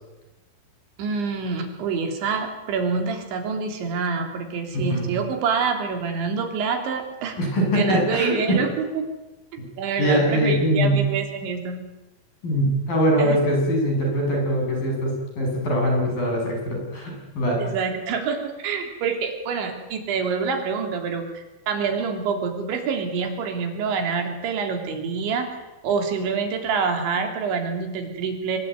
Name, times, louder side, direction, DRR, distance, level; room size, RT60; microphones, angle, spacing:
voice 1, 1.0-7.4 7.7-8.7 8.9-9.1 9.5-11.8 13.2-13.4 17.6-25.6 25.8-28.6, right 5 dB, 80° right, 5 dB, 5.5 m, -26 dB
voice 2, 4.7-5.1 7.4-8.6 10.0-11.0 12.4-17.6, equal, 50° left, 1 dB, 9.1 m, -22 dB
26.5 x 21.5 x 9.5 m, 1.0 s
omnidirectional pair, 5.2 m